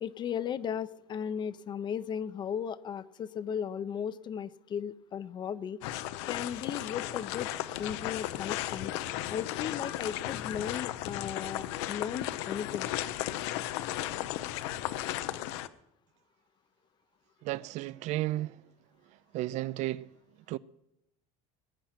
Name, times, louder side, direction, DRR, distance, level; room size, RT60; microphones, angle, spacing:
voice 1, 0.0-5.8 6.3-7.5 7.8-8.9 9.3-12.9, left 8 dB, 30° left, 0.5 m, -36 dB
sound 1, 5.8-15.7, left 14 dB, 90° left, 0.7 m, -35 dB
voice 2, 17.4-18.6 19.3-20.1 20.5-20.6, right 16 dB, 55° right, 0.4 m, -33 dB
19.5 x 8.9 x 5.9 m
cardioid pair, 145°, 14 cm